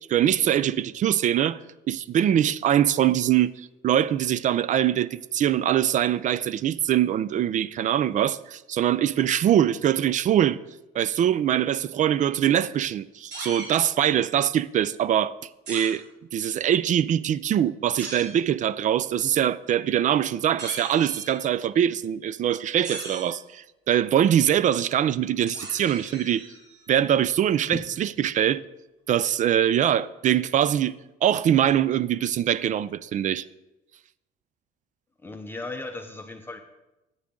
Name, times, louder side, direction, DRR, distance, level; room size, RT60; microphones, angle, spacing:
voice 1, 0.1-1.6 1.9-10.6 10.9-16.0 16.3-26.5 26.9-28.6 29.1-30.9 31.2-33.4, right 10 dB, 50° right, 0.4 m, -23 dB
sound 1, 13.3-13.8 15.7-15.9 18.0-18.3 20.6-21.5 22.8-23.4 25.5-26.8, right 2 dB, 80° right, 3.6 m, -38 dB
voice 2, 35.2-36.6, left 2 dB, 15° left, 0.8 m, -36 dB
14.0 x 8.8 x 3.7 m
cardioid pair, 110°, 17 cm